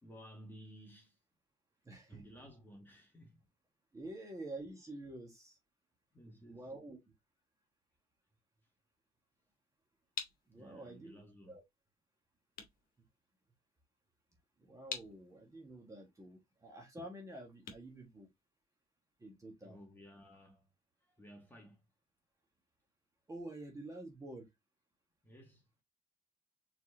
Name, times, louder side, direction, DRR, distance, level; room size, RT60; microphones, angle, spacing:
voice 1, 0.0-1.2 2.1-3.4 6.1-6.7 10.6-11.6 19.6-20.7 21.0-21.8 25.2-25.8, equal, 10° left, 1.9 m, -56 dB
voice 2, 1.8-2.2 3.9-5.6 6.4-7.0 10.5-11.2 11.5-11.6 14.6-18.3 19.2-19.8 23.3-24.5, right 1 dB, 20° right, 1.7 m, -48 dB
sound 1, 9.5-18.9, left 6 dB, 60° left, 1.5 m, -50 dB
4.6 x 4.2 x 2.8 m
cardioid pair, 140°, 17 cm